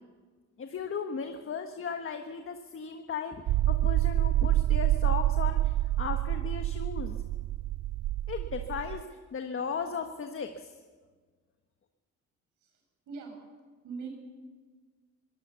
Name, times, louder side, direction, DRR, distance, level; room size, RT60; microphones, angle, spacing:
voice 1, 0.6-3.4 3.7-5.6 6.0-7.2 8.3-9.0 9.3-10.7, left 6 dB, 45° left, 6 dB, 1.4 m, -36 dB
sound 1, 3.5-9.0, right 15 dB, 65° right, 0.5 m, -27 dB
voice 2, 12.6-12.7 13.1-13.3 13.8-14.1, right 5 dB, 85° right, 2 dB, 6.9 m, -40 dB
21.5 x 17.5 x 7.0 m, 1.4 s
cardioid pair, 90°, 30 cm